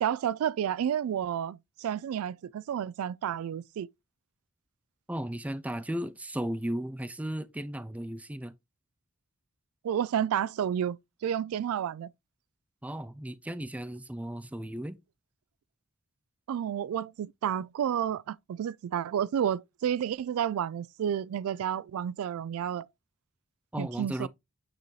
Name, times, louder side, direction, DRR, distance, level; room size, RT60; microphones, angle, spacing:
voice 1, 0.0-3.9 9.8-12.1 16.5-22.9 23.8-24.3, right 9 dB, 85° right, 0.3 m, -31 dB
voice 2, 5.1-8.5 12.8-15.0 23.7-24.3, right 1 dB, 5° right, 0.4 m, -35 dB
8.8 x 4.1 x 3.1 m
head